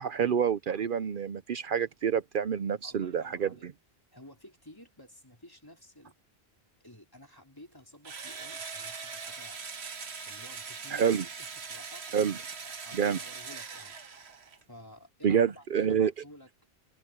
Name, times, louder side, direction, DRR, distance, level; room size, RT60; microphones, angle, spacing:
voice 1, 0.0-3.5 10.9-11.2 12.1-12.4 12.9-13.2 15.2-16.1, right 8 dB, 60° right, 0.7 m, -27 dB
voice 2, 2.8-3.7 4.1-6.2 6.8-9.6 10.2-12.4 12.6-14.0 14.7-16.7, left 1 dB, 20° left, 3.3 m, -53 dB
Engine / Drill, 8.0-14.6, right 5 dB, 85° right, 1.6 m, -41 dB
omnidirectional pair, 1.1 m